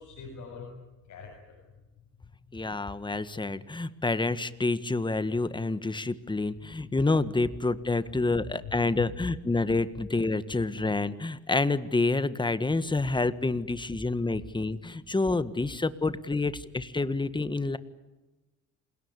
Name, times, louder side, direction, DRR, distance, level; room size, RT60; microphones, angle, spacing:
voice 1, 0.0-1.7 8.6-9.1, left 6 dB, 70° left, 0 dB, 7.3 m, -44 dB
voice 2, 2.5-17.8, left 3 dB, 15° left, 13 dB, 1.5 m, -28 dB
28.0 x 17.5 x 9.8 m, 1.1 s
cardioid pair, 90°, 30 cm